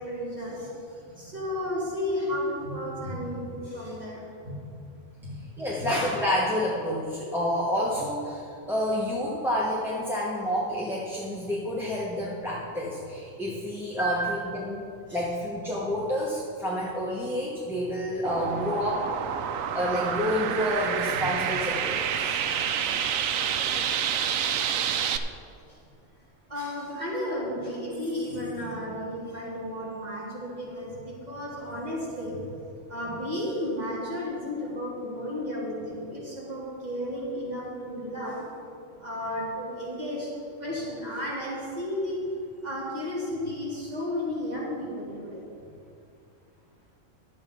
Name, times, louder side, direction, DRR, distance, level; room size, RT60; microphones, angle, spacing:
voice 1, 0.0-4.6 5.2-5.9 14.0-15.2 21.1-21.3 25.7-25.8 26.5-32.5 32.9-38.4 39.0-40.3 40.6-42.2 42.6-45.5, left 1 dB, 30° right, -7 dB, 3.4 m, -33 dB
voice 2, 5.6-19.3 19.7-22.4 22.8-22.9, left 1 dB, ahead, -6 dB, 1.2 m, -29 dB
sound 1, 18.2-25.2, right 8 dB, 90° right, 1.0 m, -28 dB
12.0 x 8.1 x 5.4 m, 2.6 s
omnidirectional pair, 1.4 m